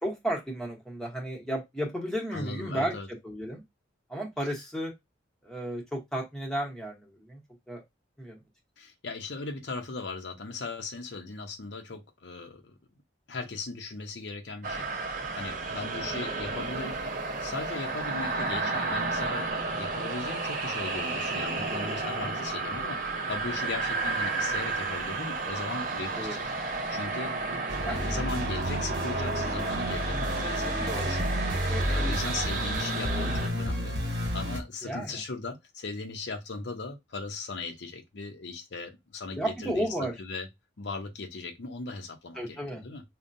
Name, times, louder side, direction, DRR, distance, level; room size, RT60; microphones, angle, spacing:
voice 1, 0.0-2.9 3.2-3.6 4.1-4.9 5.4-7.4 7.7-7.8 8.2-8.4 22.2-22.3 26.1-26.4 27.8-28.3 30.9-31.1 31.7-32.1 33.0-33.3 34.8-35.2 39.4-40.1 42.4-42.8, equal, 5° left, 1.0 m, -33 dB
voice 2, 2.3-3.1 8.8-12.7 13.3-14.9 15.3-17.0 17.4-26.5 26.9-27.3 27.8-31.2 31.8-34.0 34.3-40.5 40.8-43.0, left 3 dB, 65° left, 0.7 m, -38 dB
sound 1, 14.6-33.5, right 3 dB, 45° right, 0.8 m, -32 dB
sound 2, 27.7-34.6, equal, 60° right, 1.3 m, -31 dB
5.1 x 2.2 x 2.6 m
head